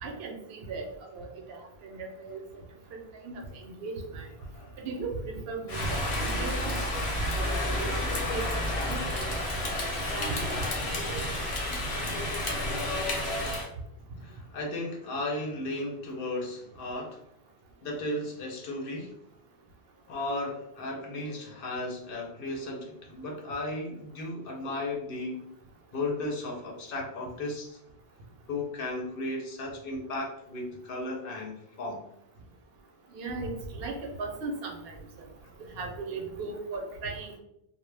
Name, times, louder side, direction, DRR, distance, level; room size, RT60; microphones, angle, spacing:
voice 1, 0.0-2.4 2.9-4.3 4.8-9.6 10.1-11.3 33.1-35.0 35.6-37.4, right 3 dB, 75° right, 2 dB, 0.8 m, -37 dB
Rain, 5.7-13.7, left 1 dB, 90° left, 1.0 m, -30 dB
voice 2, 14.2-17.2 17.8-19.1 20.1-25.5 25.9-27.8 28.5-32.0 35.4-35.5, left 2 dB, 65° left, 0 dB, 0.8 m, -35 dB
2.1 x 2.0 x 3.1 m, 0.80 s
omnidirectional pair, 1.0 m